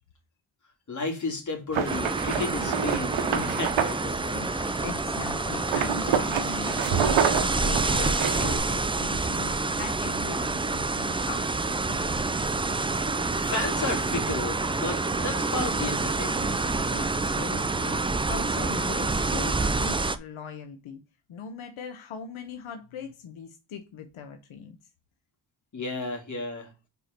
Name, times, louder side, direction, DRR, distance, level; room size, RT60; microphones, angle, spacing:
voice 1, 0.9-4.4 13.4-16.6 25.7-26.7, left 3 dB, 40° left, 2.9 m, -33 dB
sound 1, 1.7-4.0 5.7-8.6, right 8 dB, 80° right, 1.0 m, -28 dB
sound 2, 1.9-20.2, right 3 dB, 15° right, 0.3 m, -27 dB
sound 3, 3.1-8.7, left 1 dB, 5° left, 0.7 m, -41 dB
voice 2, 4.3-12.6 16.4-18.0 18.3-21.0 21.3-24.8, left 6 dB, 90° left, 1.0 m, -40 dB
4.8 x 4.7 x 5.0 m
wide cardioid pair, 115°, 47 cm